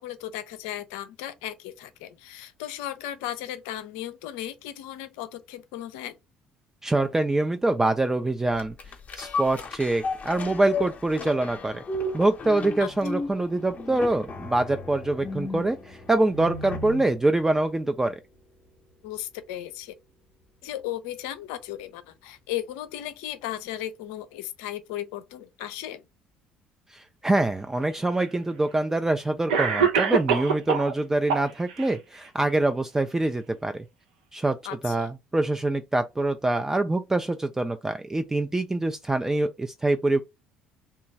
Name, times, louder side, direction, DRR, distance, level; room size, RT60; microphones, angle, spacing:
voice 1, 0.0-6.1 12.8-13.2 19.0-20.0 20.6-26.0 34.6-35.1, left 12 dB, 65° left, 0.4 m, -36 dB
voice 2, 6.8-8.7 9.2-11.8 12.1-18.2 26.9-33.8 34.3-34.6 34.8-40.2, right 2 dB, 10° right, 0.3 m, -25 dB
sound 1, 8.6-17.2 17.6-17.7, left 3 dB, 35° left, 0.8 m, -34 dB
Cough, 27.8-27.9 28.9-29.0 29.5-30.9 31.3-31.9, right 6 dB, 70° right, 0.6 m, -24 dB
3.0 x 2.3 x 3.8 m
figure-of-eight pair, 55°, 4 cm